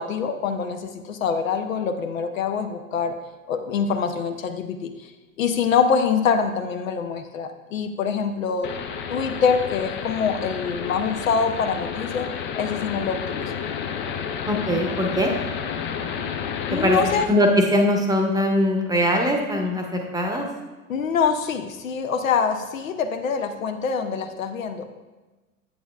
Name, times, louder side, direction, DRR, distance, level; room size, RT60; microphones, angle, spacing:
voice 1, 0.0-3.1 3.5-5.1 5.4-8.7 9.1-12.3 12.6-13.5 16.7-17.3 20.9-24.8, left 6 dB, 70° left, 7 dB, 0.7 m, -25 dB
sound 1, 8.6-17.2, left 7 dB, 25° left, 0.5 m, -30 dB
voice 2, 14.5-15.3 16.8-17.0 17.3-20.5, equal, 10° right, 2 dB, 0.9 m, -21 dB
8.6 x 8.0 x 2.3 m, 1.2 s
figure-of-eight pair, 85°, 42 cm